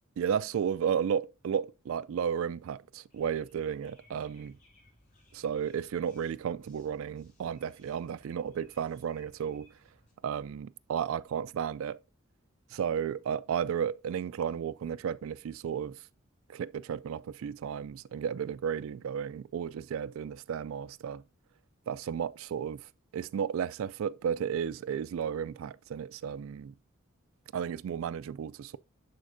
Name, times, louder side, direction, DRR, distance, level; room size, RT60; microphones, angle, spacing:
voice 1, 0.2-4.6 5.3-9.7 10.2-12.0 12.7-16.1 16.5-21.2 21.9-26.7 27.5-28.8, right 8 dB, 75° right, 0.3 m, -33 dB
sound 1, 3.1-10.1, left 1 dB, 40° left, 2.8 m, -63 dB
11.0 x 4.4 x 2.6 m
head